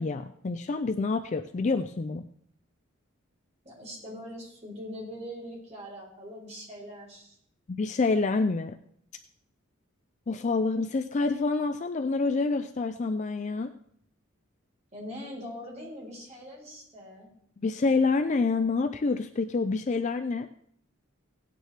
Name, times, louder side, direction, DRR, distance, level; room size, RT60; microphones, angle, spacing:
voice 1, 0.0-2.3 7.7-8.8 10.3-13.7 17.6-20.5, left 3 dB, 35° left, 9 dB, 0.4 m, -27 dB
voice 2, 3.6-7.4 14.9-17.3, equal, 30° right, -3 dB, 3.9 m, -42 dB
17.5 x 9.2 x 3.3 m, 0.68 s
head